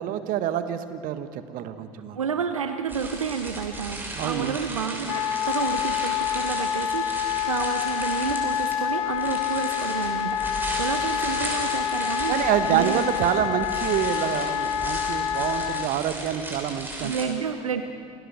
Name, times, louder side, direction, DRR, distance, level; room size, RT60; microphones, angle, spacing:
voice 1, 0.0-2.2 4.1-4.6 12.3-17.3, right 10 dB, 60° right, 10 dB, 1.5 m, -27 dB
voice 2, 2.1-12.4 12.7-13.0 17.0-17.8, right 6 dB, 90° right, 7 dB, 0.9 m, -30 dB
sound 1, 2.9-17.3, right 2 dB, 10° right, 6.2 m, -36 dB
Wind instrument woodwind instrument, 5.1-15.9, left 9 dB, 80° left, 0.5 m, -27 dB
27.5 x 18.0 x 6.5 m, 2.3 s
hypercardioid pair, 60°, 17 cm